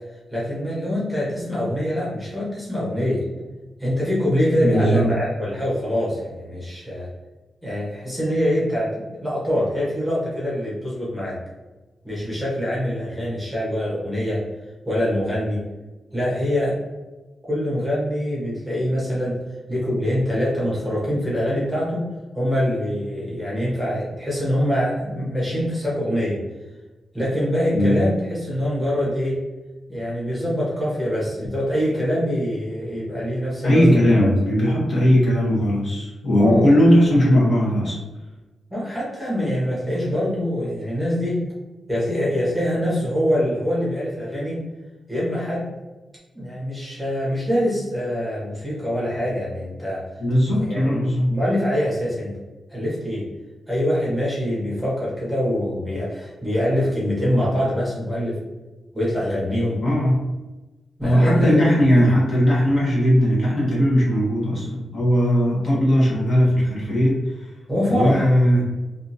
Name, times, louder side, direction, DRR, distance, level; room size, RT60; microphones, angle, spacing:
voice 1, 0.3-3.2 3.8-7.1 7.6-11.4 12.0-14.4 14.9-15.6 16.1-16.8 17.5-19.4 19.7-22.0 22.3-26.4 27.1-29.4 29.9-34.3 36.4-36.7 38.7-41.4 41.9-44.6 45.1-45.7 46.3-50.0 50.5-52.4 52.7-53.2 53.7-58.4 58.9-59.8 61.0-61.7 67.7-68.3, equal, ahead, -7 dB, 0.9 m, -24 dB
voice 2, 4.6-5.1 27.7-28.0 33.6-38.0 50.2-51.3 59.8-60.2 61.0-67.5 67.9-68.7, equal, 45° left, -6 dB, 1.0 m, -18 dB
2.7 x 2.4 x 2.6 m, 1.1 s
wide cardioid pair, 160°, 0 cm